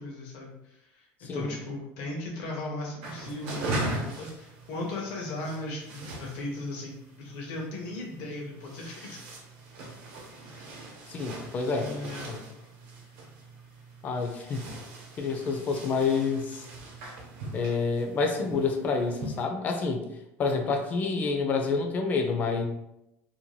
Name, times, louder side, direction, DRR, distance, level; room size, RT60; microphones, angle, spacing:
voice 1, 0.0-9.2 11.7-12.4, left 2 dB, 70° left, -2 dB, 0.7 m, -37 dB
sound 1, 3.0-19.5, right 2 dB, 90° right, 0.8 m, -40 dB
voice 2, 11.1-11.9 12.3-12.4 14.0-14.7 15.2-16.6 17.5-20.0 20.4-22.6, left 4 dB, 30° left, 4 dB, 0.4 m, -28 dB
2.6 x 2.2 x 3.0 m, 0.86 s
cardioid pair, 165°, 6 cm